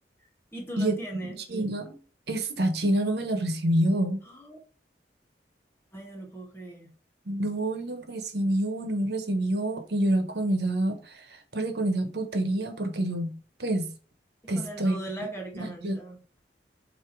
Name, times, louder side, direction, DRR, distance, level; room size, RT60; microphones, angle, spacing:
voice 1, 0.5-1.4 4.2-4.6 5.9-6.9 14.5-16.2, right 1 dB, 15° left, 1.7 m, -39 dB
voice 2, 1.2-2.0 2.3-4.2 7.3-13.9 14.5-15.0 15.5-16.0, right 1 dB, 70° right, 1.2 m, -27 dB
8.2 x 2.9 x 4.6 m
head